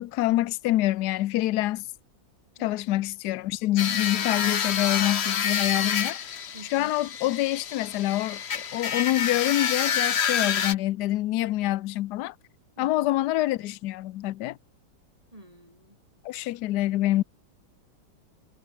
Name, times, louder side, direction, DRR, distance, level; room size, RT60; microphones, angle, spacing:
voice 1, 0.0-1.8 2.6-6.3 6.7-12.3 12.8-14.6 16.2-17.2, left 15 dB, 70° left, 1.0 m, -26 dB
voice 2, 2.6-3.1 6.5-6.9 12.8-13.2 15.3-16.0, right 1 dB, 15° right, 6.9 m, -48 dB
sound 1, 3.8-10.7, left 7 dB, 45° left, 0.9 m, -28 dB
omnidirectional pair, 2.2 m